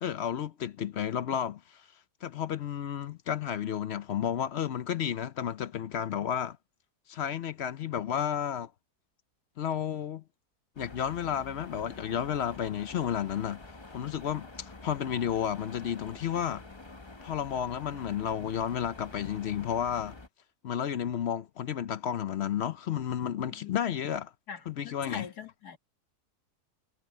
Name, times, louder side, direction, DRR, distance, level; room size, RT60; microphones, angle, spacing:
voice 1, 0.0-1.9 2.2-6.6 7.1-8.7 9.6-10.2 10.8-13.6 13.9-16.6 17.2-20.2 20.6-24.3 24.7-25.2, left 9 dB, 60° left, 0.7 m, -32 dB
sound 1, 10.8-20.3, left 3 dB, 20° left, 1.0 m, -48 dB
voice 2, 24.5-25.8, left 7 dB, 80° left, 2.5 m, -43 dB
omnidirectional pair, 1.7 m